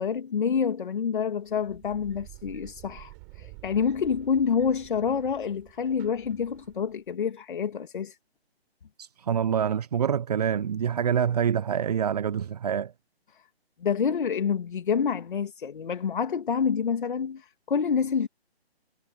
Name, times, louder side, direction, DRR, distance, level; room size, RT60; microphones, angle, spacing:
voice 1, 0.0-8.2 13.8-18.3, left 6 dB, 50° left, 2.2 m, -27 dB
sound 1, 1.4-7.1, right 40 dB or more, 20° right, 4.1 m, -49 dB
voice 2, 9.0-12.9, right 8 dB, 40° right, 0.9 m, -26 dB
figure-of-eight pair, 150°, 32 cm